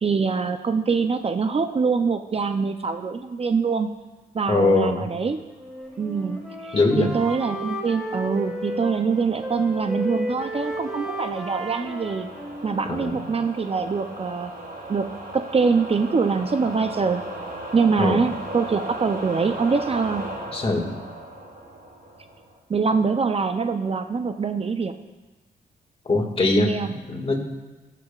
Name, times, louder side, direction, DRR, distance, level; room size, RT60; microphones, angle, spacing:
voice 1, 0.0-3.9 4.3-5.4 6.0-12.3 12.6-14.5 14.9-15.1 15.3-17.2 17.7-20.3 22.7-24.9 26.6-26.9, right 5 dB, 35° right, 8 dB, 0.5 m, -24 dB
voice 2, 4.5-5.1 6.7-7.1 12.9-13.2 18.0-18.2 20.5-20.9 26.1-26.7 27.1-27.4, left 2 dB, 35° left, 2 dB, 1.9 m, -21 dB
Wind instrument woodwind instrument, 5.5-9.1 9.4-13.4, equal, 5° right, 1.8 m, -33 dB
sound 1, 6.1-22.6, right 1 dB, 65° right, 3.4 m, -38 dB
18.0 x 6.9 x 2.4 m, 1.2 s
cardioid pair, 75°, 17 cm